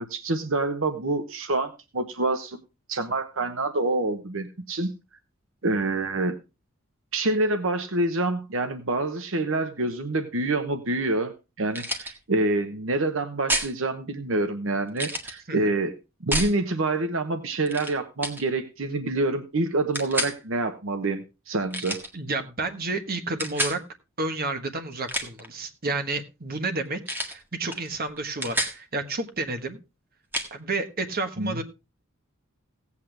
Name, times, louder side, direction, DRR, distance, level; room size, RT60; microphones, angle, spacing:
voice 1, 0.0-2.6 2.9-4.9 5.6-6.4 7.1-11.3 11.6-15.9 16.2-22.0 31.4-31.6, right 2 dB, 70° right, 8 dB, 1.0 m, -27 dB
sound 1, 11.7-12.1 13.5-13.7 14.9-15.3 16.3-16.5 17.7-17.9 18.2-18.4 19.9-20.3 21.7-22.1 23.4-23.8 24.9-25.5 27.1-27.4 27.7-27.9 28.2-28.8 30.3-30.5, equal, 10° right, 1.7 m, -29 dB
voice 2, 22.1-23.8 24.2-29.8 30.5-31.6, right 3 dB, 45° right, 7 dB, 1.3 m, -30 dB
17.0 x 8.4 x 3.3 m, 0.27 s
head